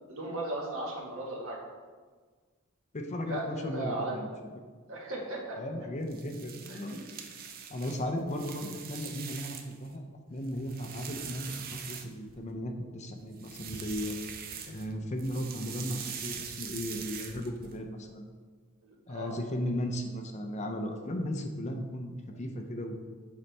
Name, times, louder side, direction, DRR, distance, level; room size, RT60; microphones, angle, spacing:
voice 1, 0.1-1.6 3.3-4.2 4.9-5.6 6.7-7.0 18.8-19.4, right 1 dB, 70° right, -2 dB, 1.5 m, -36 dB
voice 2, 2.9-4.3 5.6-7.0 7.7-14.2 14.6-18.2 19.1-22.1 22.4-22.9, equal, 35° left, 4 dB, 0.6 m, -36 dB
sound 1, 6.0-9.9 10.3-12.5 13.3-14.9 15.2-17.7, right 7 dB, 45° right, 0.6 m, -43 dB
6.9 x 5.3 x 3.3 m, 1.5 s
head